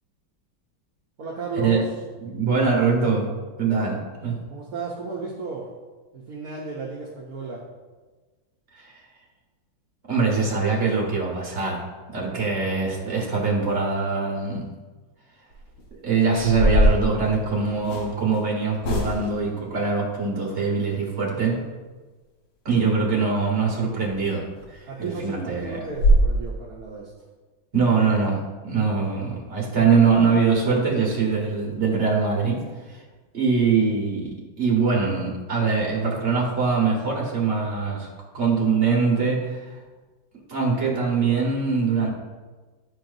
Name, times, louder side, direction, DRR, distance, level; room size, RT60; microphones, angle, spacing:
voice 1, 1.2-1.9 4.5-5.7 6.1-7.6 12.3-12.4 24.9-27.1, right 4 dB, 55° right, -3 dB, 1.1 m, -34 dB
voice 2, 2.3-3.3 3.6-4.4 8.7-8.9 10.1-14.7 15.9-21.6 22.6-25.8 27.7-33.0 33.3-38.1 38.3-39.7 40.5-42.1, right 5 dB, 35° right, -2 dB, 1.6 m, -23 dB
sound 1, 15.5-15.8 16.3-18.1 18.8-19.5 24.0-24.1 24.6-24.7 25.1-25.2 25.5-25.6 25.9-26.3, equal, 85° left, 2.3 m, -21 dB
11.0 x 4.5 x 2.6 m, 1.3 s
omnidirectional pair, 2.2 m